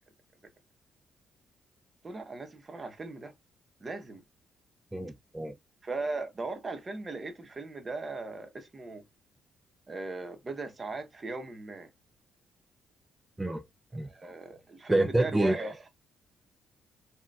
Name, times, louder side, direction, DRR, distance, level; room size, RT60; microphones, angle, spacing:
voice 1, 2.0-3.3 3.8-4.2 5.8-9.0 9.9-11.9 14.0-15.9, right 3 dB, 30° right, 0.7 m, -38 dB
voice 2, 4.9-5.5 13.4-13.6 13.9-14.1 14.9-15.6, right 1 dB, 10° right, 0.3 m, -27 dB
3.8 x 2.2 x 2.3 m
cardioid pair, 90°, 0 cm